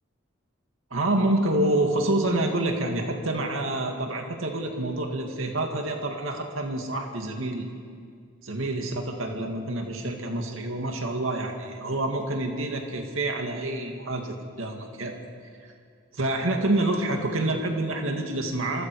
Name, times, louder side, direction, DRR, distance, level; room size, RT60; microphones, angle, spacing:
voice 1, 0.9-7.7 8.4-15.2 16.1-18.8, right 1 dB, 80° right, 2 dB, 2.1 m, -27 dB
27.5 x 25.0 x 4.8 m, 2.2 s
head